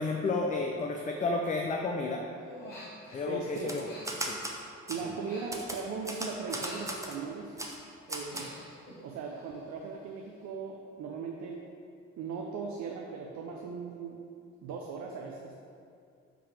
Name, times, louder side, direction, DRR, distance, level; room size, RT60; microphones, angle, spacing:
voice 1, 0.0-2.2 3.1-3.8 4.2-4.4 5.0-5.1, left 3 dB, 20° left, 2 dB, 0.4 m, -31 dB
Human voice, 2.5-3.3 3.6-6.0 6.3-7.6 7.9-9.7 10.0-10.4, left 1 dB, 90° left, 0.9 m, -49 dB
voice 2, 3.3-3.7 4.9-7.5 8.1-8.5 9.0-11.6 12.2-14.2 14.6-15.6, right 5 dB, 50° right, 0 dB, 0.6 m, -38 dB
Typewriter, 3.6-4.6 4.9-5.0 5.5-7.2 7.6-7.8 8.1-8.5, right 1 dB, 10° right, 0.8 m, -37 dB
5.8 x 4.8 x 3.4 m, 2.4 s
figure-of-eight pair, 45°, 37 cm